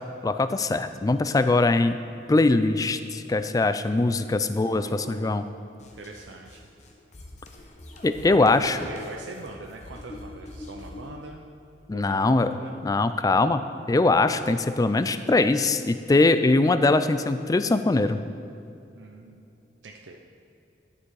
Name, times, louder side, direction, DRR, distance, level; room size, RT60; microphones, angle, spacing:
voice 1, 0.2-2.0 2.3-5.4 8.0-8.8 11.9-12.6 12.8-13.6 13.9-18.2, left 2 dB, 20° left, 11 dB, 0.3 m, -22 dB
voice 2, 3.9-5.4 5.9-6.6 8.2-11.5 11.9-12.8 18.9-19.4 19.8-20.2, right 2 dB, 90° right, 1 dB, 0.6 m, -42 dB
sound 1, 5.8-11.1, left 2 dB, 40° left, 1.0 m, -44 dB
11.5 x 7.0 x 4.8 m, 2.7 s
head